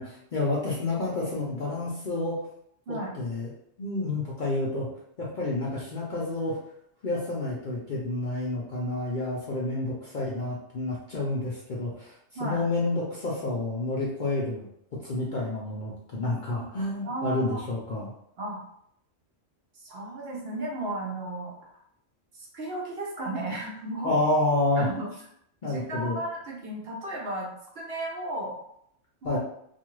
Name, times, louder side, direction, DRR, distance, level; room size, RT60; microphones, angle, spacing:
voice 1, 0.0-2.4 2.9-3.5 3.8-4.9 5.2-6.6 7.0-12.1 12.4-14.7 15.0-18.1 24.0-24.9 25.6-26.2 29.2-29.4, left 2 dB, 55° left, -5 dB, 0.6 m, -29 dB
voice 2, 17.0-17.6 18.4-18.6 19.7-21.6 22.3-24.2 24.8-25.1 25.6-28.6 29.2-29.4, right 2 dB, 60° right, -2 dB, 0.8 m, -34 dB
2.5 x 2.3 x 3.0 m, 0.72 s
omnidirectional pair, 1.3 m